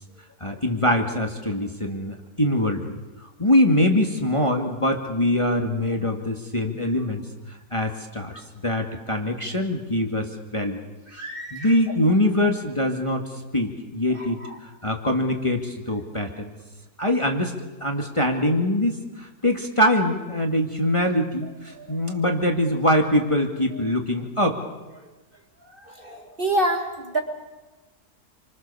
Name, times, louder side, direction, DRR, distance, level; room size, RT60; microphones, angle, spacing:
voice 1, 0.4-10.8 11.5-13.3 13.5-16.6 17.0-17.5 17.8-24.6, left 1 dB, 20° left, 2 dB, 2.3 m, -23 dB
voice 2, 11.1-11.9 14.1-14.6 21.7-22.1 25.0-25.1 25.6-27.2, right 1 dB, 35° right, 3 dB, 2.9 m, -29 dB
28.5 x 25.0 x 7.0 m, 1.2 s
omnidirectional pair, 1.6 m